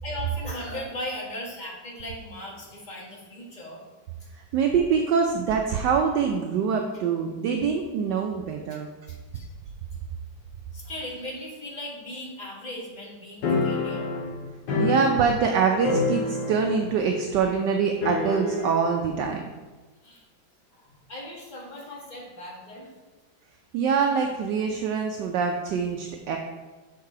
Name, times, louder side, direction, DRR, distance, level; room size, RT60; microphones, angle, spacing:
voice 1, 0.0-3.8 9.1-9.5 10.7-14.1 20.0-20.2 20.7-22.9, left 1 dB, 25° left, -4 dB, 1.4 m, -38 dB
voice 2, 4.5-8.9 14.8-19.4 23.7-26.4, right 6 dB, 75° right, 3 dB, 1.1 m, -24 dB
sound 1, 13.4-15.6 15.8-16.8 17.1-17.2 18.0-18.8, left 3 dB, 70° left, 1.6 m, -27 dB
6.4 x 4.6 x 4.8 m, 1.2 s
omnidirectional pair, 2.1 m